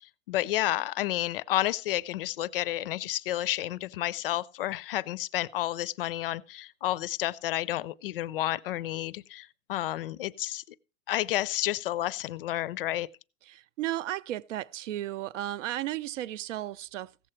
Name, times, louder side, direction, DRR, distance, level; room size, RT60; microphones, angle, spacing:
voice 1, 0.0-10.6 11.1-13.1, left 14 dB, 45° left, 0.5 m, -31 dB
voice 2, 13.5-17.1, right 14 dB, 70° right, 0.6 m, -34 dB
16.0 x 7.7 x 4.4 m
supercardioid pair, 175°, 39 cm